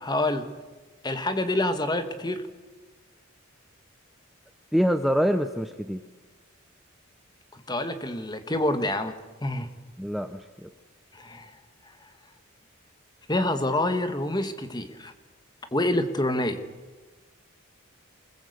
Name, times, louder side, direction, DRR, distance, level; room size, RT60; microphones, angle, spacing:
voice 1, 0.0-0.5 1.0-2.4 7.5-9.7 11.1-11.5 13.3-15.1 15.7-16.6, left 1 dB, 20° left, 9 dB, 1.5 m, -27 dB
voice 2, 4.7-6.0 10.0-10.7, equal, ahead, 7 dB, 0.7 m, -25 dB
24.0 x 21.0 x 8.0 m, 1.3 s
head